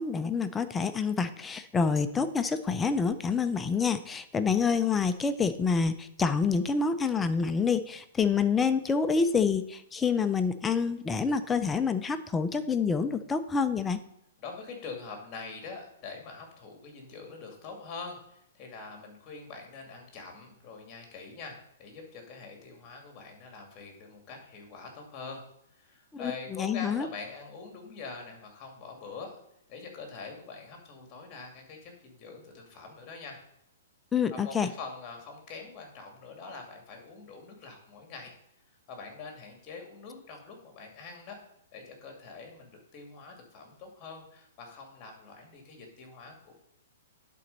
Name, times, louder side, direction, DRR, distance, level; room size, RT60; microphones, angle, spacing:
voice 1, 0.0-14.0 26.1-27.1 34.1-34.7, left 5 dB, 10° left, 10 dB, 0.4 m, -27 dB
voice 2, 14.4-25.4 25.8-29.4 29.7-33.4 34.3-38.3 38.9-41.4 41.7-46.5, left 4 dB, 25° left, 3 dB, 2.2 m, -44 dB
11.0 x 4.2 x 5.3 m, 0.76 s
hypercardioid pair, 155°, 0 cm